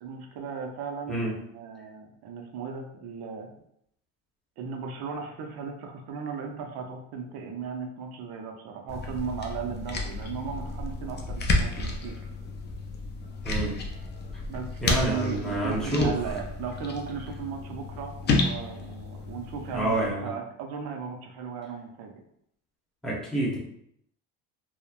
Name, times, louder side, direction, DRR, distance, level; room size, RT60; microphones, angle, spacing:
voice 1, 0.0-3.5 4.6-12.2 14.5-22.1, right 5 dB, 65° right, 2 dB, 0.6 m, -36 dB
sound 1, 8.9-20.1, left 2 dB, 25° left, 0.4 m, -31 dB
voice 2, 13.4-13.8 14.8-16.1 19.7-20.3 23.0-23.6, right 1 dB, ahead, -5 dB, 0.9 m, -28 dB
2.9 x 2.1 x 2.4 m, 0.72 s
cardioid pair, 100°, 41 cm